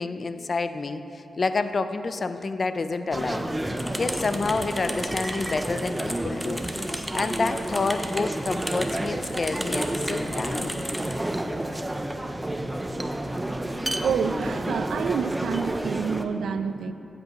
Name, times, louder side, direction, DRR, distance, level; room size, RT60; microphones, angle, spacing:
voice 1, 0.0-3.5 4.0-6.7 7.1-10.8, left 3 dB, 50° left, 10 dB, 0.4 m, -28 dB
sound 1, 3.1-16.2, right 1 dB, 15° right, 0.5 m, -30 dB
sound 2, 3.8-11.1, equal, 5° left, 0.9 m, -35 dB
voice 2, 14.0-16.9, right 6 dB, 90° right, 10 dB, 0.3 m, -28 dB
14.5 x 7.8 x 3.0 m, 2.8 s
cardioid pair, 70°, 0 cm